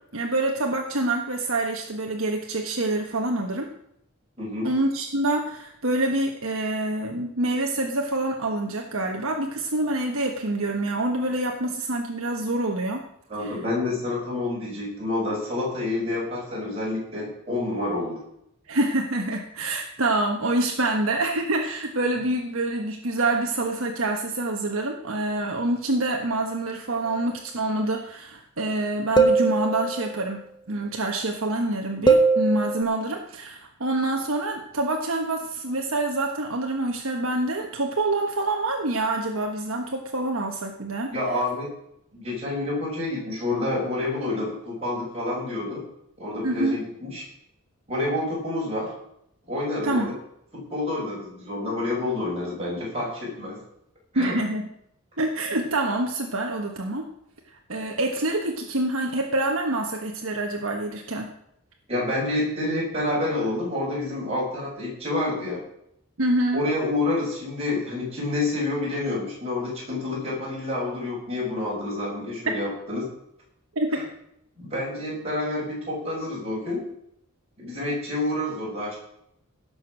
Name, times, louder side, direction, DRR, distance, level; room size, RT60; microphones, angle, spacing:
voice 1, 0.1-3.7 4.6-13.0 13.4-13.6 18.7-41.1 46.4-46.8 49.8-50.2 54.1-54.7 55.2-57.1 57.7-61.3 66.2-66.6 73.7-74.0, right 2 dB, 65° right, 2 dB, 1.3 m, -26 dB
voice 2, 4.4-4.7 13.3-18.2 41.1-41.7 42.1-45.8 46.2-47.2 47.9-48.9 49.5-50.1 50.5-53.6 54.1-54.4 61.9-65.6 66.5-73.1 73.9-74.0 74.6-76.8 77.6-79.0, left 2 dB, 30° right, -5 dB, 6.8 m, -28 dB
sound 1, 29.2-30.2 32.1-32.8, right 3 dB, 20° left, 1.1 m, -20 dB
17.0 x 6.7 x 6.4 m, 0.75 s
head